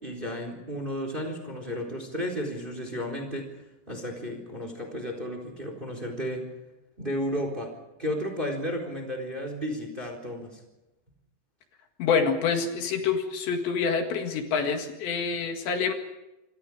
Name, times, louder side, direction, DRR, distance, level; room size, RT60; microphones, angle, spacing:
voice 1, 0.0-3.5 3.9-6.4 7.0-7.7 8.0-10.6, equal, 10° right, 5 dB, 3.5 m, -33 dB
voice 2, 12.0-15.9, left 5 dB, 70° left, 4 dB, 4.0 m, -26 dB
27.5 x 26.0 x 5.0 m, 0.99 s
omnidirectional pair, 5.5 m